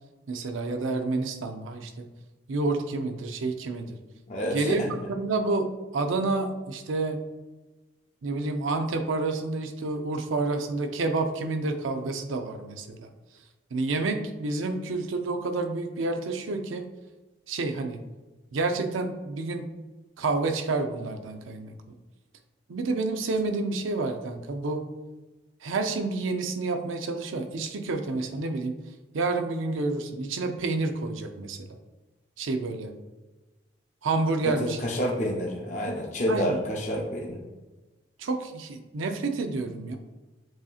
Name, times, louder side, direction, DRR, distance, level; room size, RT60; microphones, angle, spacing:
voice 1, 0.3-2.1 2.5-4.0 4.5-7.2 8.2-13.1 13.7-16.8 17.5-18.0 18.5-19.7 20.2-22.0 22.7-24.9 25.6-28.8 29.1-31.7 32.4-32.9 34.0-34.8 36.3-36.6 38.2-40.0, right 3 dB, 85° right, 6 dB, 0.5 m, -29 dB
voice 2, 4.3-4.9 34.4-37.4, equal, 35° left, -1 dB, 0.5 m, -29 dB
7.5 x 2.8 x 2.4 m, 1.2 s
head